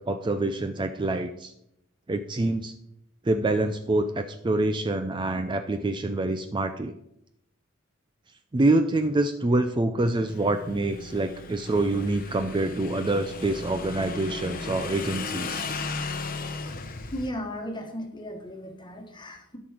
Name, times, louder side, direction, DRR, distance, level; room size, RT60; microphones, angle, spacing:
voice 1, 0.0-1.5 2.1-2.7 3.2-6.9 8.5-15.6, right 2 dB, 20° right, 8 dB, 0.4 m, -26 dB
Motorcycle / Engine, 10.3-17.3, left 4 dB, 40° left, 0.9 m, -36 dB
voice 2, 17.1-19.6, equal, 20° left, 4 dB, 1.4 m, -36 dB
12.0 x 6.0 x 4.9 m, 0.79 s
head